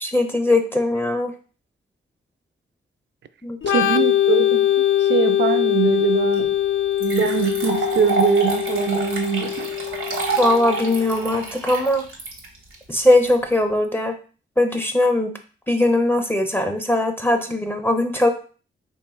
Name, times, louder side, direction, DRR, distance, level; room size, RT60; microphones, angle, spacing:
voice 1, 0.0-1.3 3.4-3.8 10.4-12.0 12.9-14.2 14.6-15.3 15.7-18.3, left 1 dB, 10° left, 0.4 m, -20 dB
Organ, 3.6-11.1, left 12 dB, 70° left, 0.4 m, -22 dB
voice 2, 3.7-4.6 5.0-6.5 7.0-9.8, right 7 dB, 60° right, 0.4 m, -22 dB
sound 1, 6.3-6.4 7.0-13.3, right 3 dB, 85° right, 1.0 m, -28 dB
3.2 x 2.3 x 4.2 m
cardioid pair, 80°, 21 cm